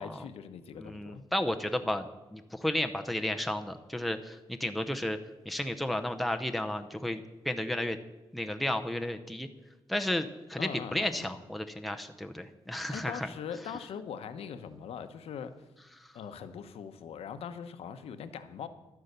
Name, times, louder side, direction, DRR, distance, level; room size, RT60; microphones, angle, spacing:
voice 1, 0.0-1.2 10.6-11.3 12.9-15.5 16.1-18.7, left 7 dB, 85° left, 10 dB, 0.9 m, -41 dB
voice 2, 0.8-5.2 5.5-8.0 8.3-9.5 9.9-13.3, left 1 dB, ahead, 6 dB, 0.6 m, -33 dB
11.5 x 9.5 x 6.7 m, 1.1 s
wide cardioid pair, 140°, 10 cm